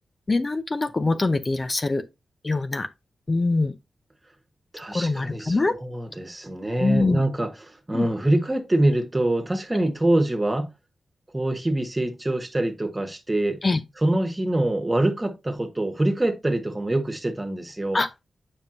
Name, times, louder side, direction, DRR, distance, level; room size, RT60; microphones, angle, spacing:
voice 1, 0.3-2.0 2.4-2.9 3.3-3.7 4.9-5.7 6.8-7.2 7.9-8.1 13.6-13.8 17.9-18.1, left 3 dB, 40° left, 0.6 m, -23 dB
voice 2, 4.7-10.7 11.3-13.6 14.0-18.0, right 1 dB, 25° right, 1.5 m, -25 dB
7.1 x 5.4 x 2.6 m
cardioid pair, 50°, 0 cm